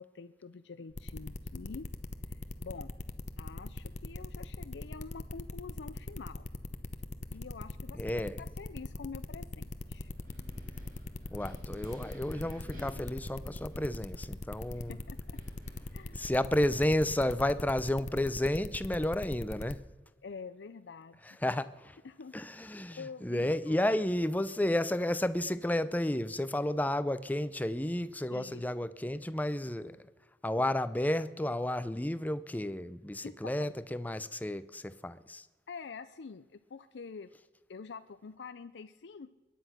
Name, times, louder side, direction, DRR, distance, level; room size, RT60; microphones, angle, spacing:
voice 1, 0.0-1.9 2.3-2.9 3.4-6.5 7.3-10.1 14.7-15.4 15.9-16.2 20.2-21.2 22.0-22.3 23.0-23.8 28.3-28.6 33.2-33.3 33.6-33.7 35.7-37.3 37.7-39.3, left 5 dB, 85° left, 0.5 m, -46 dB
sound 1, 0.9-19.7, left 2 dB, 45° left, 0.9 m, -40 dB
voice 2, 7.9-8.4 11.3-15.0 16.1-19.8 21.2-22.0 22.3-30.1 30.4-35.5, left 1 dB, 10° left, 0.5 m, -32 dB
Wind, 9.7-16.6, equal, 50° right, 5.2 m, -52 dB
22.5 x 10.0 x 5.9 m
head